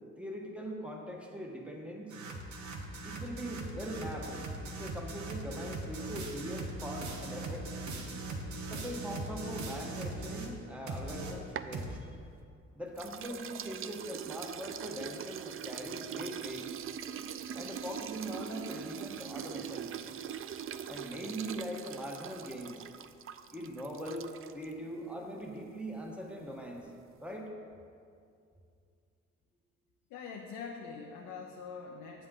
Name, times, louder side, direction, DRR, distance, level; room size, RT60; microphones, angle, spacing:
voice 1, 0.2-2.1 3.0-7.7 8.7-12.1 12.7-16.7 17.5-19.9 20.9-22.8 23.5-26.9 27.2-27.5, equal, 5° right, 0 dB, 1.3 m, -41 dB
sound 1, 2.1-10.6 10.9-12.0, right 2 dB, 65° right, 1.1 m, -40 dB
sound 2, 11.4-12.6 13.0-24.7, right 9 dB, 45° right, 0.4 m, -42 dB
voice 2, 30.1-32.3, left 5 dB, 90° left, 1 dB, 0.7 m, -44 dB
8.4 x 7.8 x 3.7 m, 2.4 s
cardioid pair, 90°, 30 cm